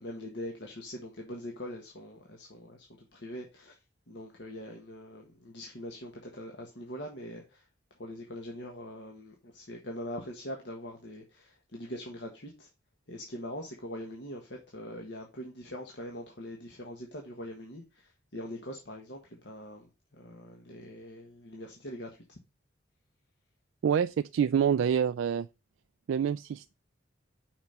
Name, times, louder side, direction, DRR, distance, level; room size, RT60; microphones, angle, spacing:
voice 1, 0.0-3.8 4.1-7.7 8.0-12.7 13.1-22.4, left 1 dB, 65° left, 1.5 m, -43 dB
voice 2, 23.8-25.5 26.1-26.7, right 8 dB, 85° right, 0.3 m, -27 dB
6.0 x 5.3 x 5.7 m
head